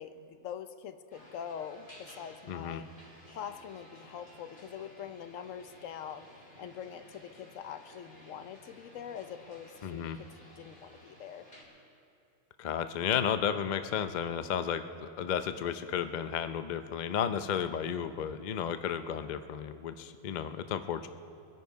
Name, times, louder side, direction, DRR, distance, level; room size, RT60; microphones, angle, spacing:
voice 1, 0.0-2.8 3.3-6.3 6.6-10.3 10.6-11.5, left 8 dB, 65° left, 10 dB, 0.9 m, -44 dB
sound 1, 1.1-11.6, equal, 30° left, 3.4 m, -55 dB
voice 2, 2.5-2.8 9.8-10.2 12.6-21.1, left 8 dB, 85° left, 10 dB, 0.4 m, -33 dB
23.5 x 10.5 x 4.6 m, 2.6 s
omnidirectional pair, 1.6 m